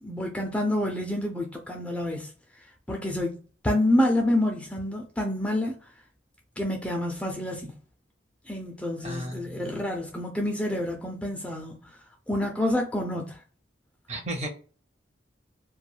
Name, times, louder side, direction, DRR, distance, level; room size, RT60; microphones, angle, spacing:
voice 1, 0.0-2.3 2.9-3.4 3.6-5.7 6.6-7.8 8.5-11.9 12.3-13.4, left 1 dB, 5° left, 0.3 m, -28 dB
voice 2, 9.0-9.7 14.1-14.5, right 1 dB, 35° right, 0.6 m, -34 dB
2.2 x 2.2 x 3.1 m
head